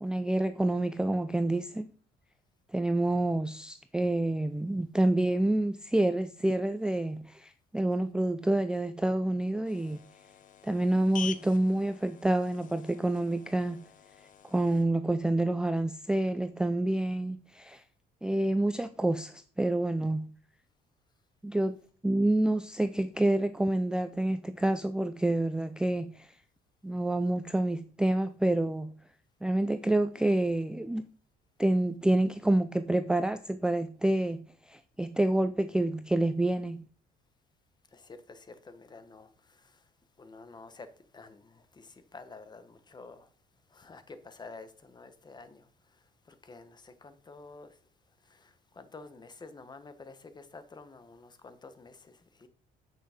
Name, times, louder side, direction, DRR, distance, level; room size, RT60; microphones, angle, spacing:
voice 1, 0.0-1.9 2.7-10.0 10.6-13.8 14.5-17.8 18.2-20.3 21.4-21.8 22.0-26.3 26.8-28.9 29.4-31.1 31.6-36.8, right 1 dB, 5° right, 0.4 m, -28 dB
sound 1, 9.6-14.9, left 8 dB, 50° left, 0.9 m, -46 dB
voice 2, 37.9-39.9 40.2-43.3 43.7-47.8 48.1-52.5, left 3 dB, 25° left, 1.3 m, -50 dB
8.9 x 6.2 x 5.1 m
cardioid pair, 110°, 17 cm